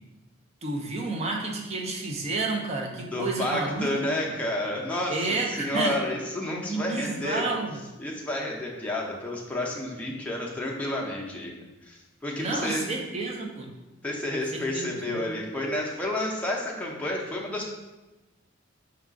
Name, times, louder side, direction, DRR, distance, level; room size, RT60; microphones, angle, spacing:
voice 1, 0.6-4.4 5.1-6.0 6.7-7.8 12.4-13.7 14.5-15.3, right 3 dB, 35° right, 1 dB, 0.6 m, -31 dB
voice 2, 3.1-5.2 5.5-7.5 8.0-11.5 11.8-12.9 14.0-17.7, left 1 dB, 5° left, -3 dB, 0.6 m, -30 dB
4.7 x 2.4 x 3.6 m, 1.1 s
head